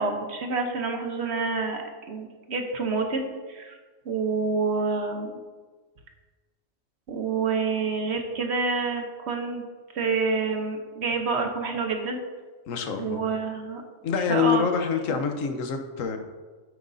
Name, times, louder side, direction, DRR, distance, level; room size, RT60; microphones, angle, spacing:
voice 1, 0.0-3.8 4.1-5.3 7.1-9.6 9.9-12.2 13.0-13.8 14.3-14.6, right 4 dB, 60° right, 4 dB, 1.0 m, -28 dB
voice 2, 12.7-13.2 14.0-16.2, left 6 dB, 85° left, 6 dB, 1.2 m, -26 dB
9.2 x 8.0 x 2.6 m, 1.3 s
omnidirectional pair, 1.3 m